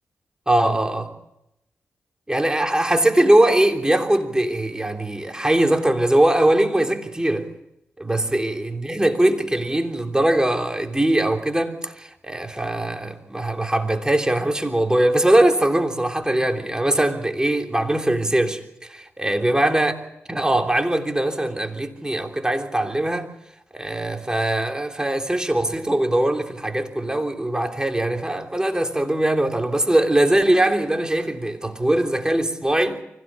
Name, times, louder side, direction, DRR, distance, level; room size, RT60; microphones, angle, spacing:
voice 1, 0.5-1.2 2.3-7.5 8.0-19.9 20.3-23.3 23.7-33.0, right 1 dB, 15° right, 3.3 m, -21 dB
25.0 x 16.5 x 8.6 m
supercardioid pair, 40°, 5 cm